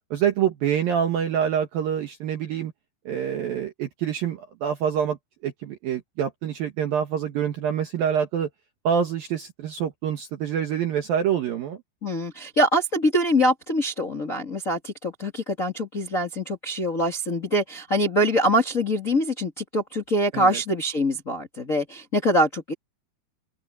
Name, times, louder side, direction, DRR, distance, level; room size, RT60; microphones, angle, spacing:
voice 1, 0.1-2.7 3.1-5.2 5.4-8.5 8.8-11.8 20.3-20.6, right 8 dB, 65° right, 2.4 m, -26 dB
voice 2, 12.0-22.7, equal, 30° left, 1.5 m, -24 dB
open air
omnidirectional pair, 5.8 m